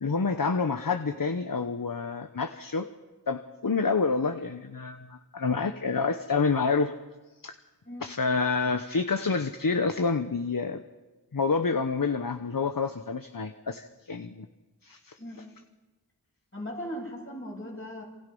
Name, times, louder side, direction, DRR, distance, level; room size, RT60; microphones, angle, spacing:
voice 1, 0.0-2.9 3.3-6.9 7.4-7.6 8.0-10.8 11.3-14.5 14.8-15.4, left 4 dB, 55° left, 8 dB, 1.1 m, -28 dB
voice 2, 15.2-15.5 16.5-18.0, equal, 30° left, -1 dB, 7.7 m, -38 dB
27.5 x 27.0 x 5.5 m, 1.2 s
wide cardioid pair, 50°, 40 cm